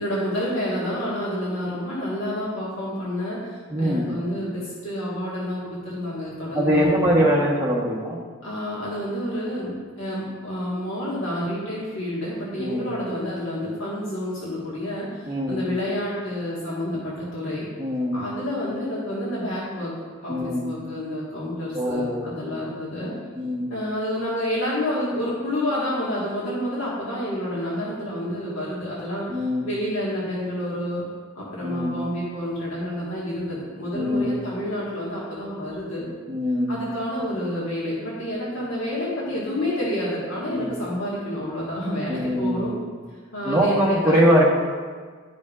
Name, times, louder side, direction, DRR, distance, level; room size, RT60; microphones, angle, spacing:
voice 1, 0.0-7.2 8.4-17.7 18.1-19.9 20.2-23.1 23.7-31.0 31.3-36.0 36.7-42.7 43.3-44.1, equal, 75° left, -7 dB, 1.6 m, -29 dB
voice 2, 3.7-4.1 6.5-8.2 12.6-12.8 15.3-15.6 17.8-18.2 20.3-20.6 21.7-22.3 23.3-23.7 29.3-29.7 31.6-32.0 33.9-34.3 36.3-36.8 40.5-40.7 42.1-42.8 43.4-44.5, equal, 10° right, -4 dB, 1.1 m, -22 dB
11.5 x 5.1 x 2.4 m, 1.5 s
head